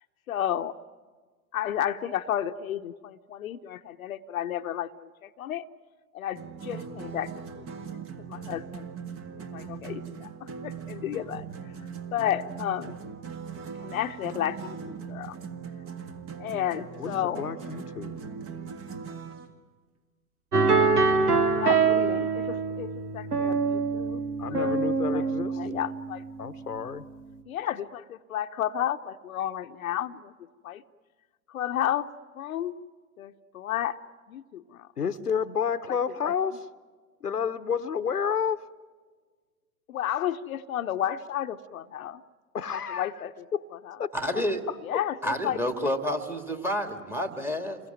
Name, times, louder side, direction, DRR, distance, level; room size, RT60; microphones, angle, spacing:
voice 1, 0.3-0.8 1.5-5.7 6.1-7.7 8.3-8.9 9.3-11.4 12.1-12.9 13.8-14.8 15.1-15.4 16.4-17.5 21.5-24.8 25.1-25.2 25.6-26.2 27.5-30.3 30.6-30.8 31.5-32.1 32.3-32.8 33.2-34.0 34.3-34.9 36.2-36.3 39.9-42.2 43.0-43.4 43.9-44.0 44.8-45.6, left 11 dB, 65° left, 8 dB, 1.0 m, -32 dB
sound 1, 6.3-19.5, right 6 dB, 30° right, 1.9 m, -40 dB
voice 2, 17.0-18.3 24.4-25.8 26.4-27.0 35.0-36.7 37.2-38.6 42.5-43.1 43.5-43.6 44.0-45.0, left 7 dB, 90° left, 12 dB, 1.1 m, -30 dB
sound 2, 20.5-26.7, right 4 dB, 85° right, 2.0 m, -25 dB
voice 3, 44.1-44.6 45.2-47.8, equal, 5° right, 7 dB, 2.1 m, -29 dB
28.5 x 22.0 x 9.3 m, 1.5 s
figure-of-eight pair, 105°, 45 cm